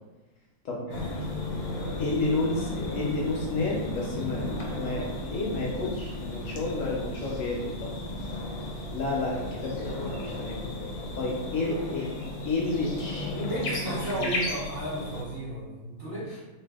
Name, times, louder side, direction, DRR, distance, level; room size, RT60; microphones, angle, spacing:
sound 1, 0.9-15.2, left 1 dB, 85° left, 1.1 m, -34 dB
voice 1, 2.0-8.0 8.9-10.6 11.2-12.1 12.5-14.1, left 2 dB, 70° left, -3 dB, 0.8 m, -31 dB
voice 2, 13.5-16.3, right 1 dB, 45° right, -8 dB, 1.0 m, -34 dB
2.6 x 2.2 x 3.4 m, 1.1 s
omnidirectional pair, 1.6 m